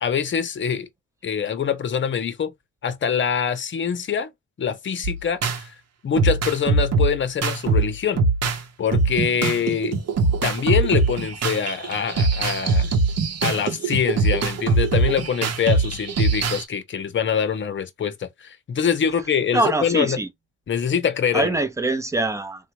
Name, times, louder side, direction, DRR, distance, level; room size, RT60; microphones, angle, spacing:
voice 1, 0.0-0.9 1.2-2.5 2.8-4.3 4.6-5.7 6.0-10.0 10.4-12.9 13.4-20.2 20.7-21.5, left 7 dB, 40° left, 0.8 m, -24 dB
sound 1, 5.0-5.6 6.2-8.6 8.9-16.6, right 3 dB, 55° right, 0.9 m, -22 dB
voice 2, 19.5-20.3 21.3-22.7, right 2 dB, 10° right, 0.7 m, -23 dB
3.4 x 2.2 x 3.0 m
cardioid pair, 90°, 30 cm